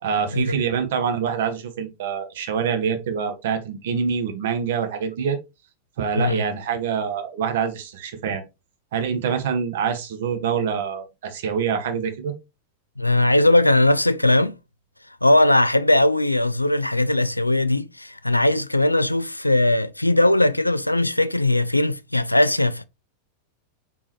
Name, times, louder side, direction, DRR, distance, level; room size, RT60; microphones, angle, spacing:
voice 1, 0.0-5.4 6.0-8.4 8.9-12.3, right 6 dB, 55° right, 1.1 m, -25 dB
voice 2, 13.0-14.5 15.2-22.8, left 1 dB, 85° left, 0.3 m, -19 dB
4.7 x 3.7 x 2.9 m
figure-of-eight pair, 90°, 0 cm